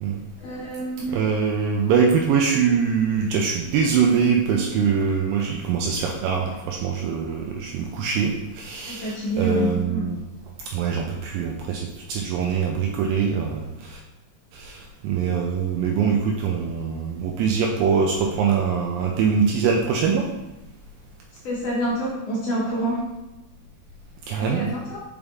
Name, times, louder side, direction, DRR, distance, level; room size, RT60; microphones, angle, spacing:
voice 1, 0.4-1.2 8.9-10.0 21.4-23.1 24.3-25.0, equal, 80° left, -5 dB, 1.4 m, -27 dB
voice 2, 1.1-10.2 10.7-14.0 14.5-20.3 24.3-24.7, right 6 dB, 80° right, 1 dB, 2.2 m, -23 dB
5.5 x 5.2 x 3.5 m, 0.98 s
omnidirectional pair, 4.1 m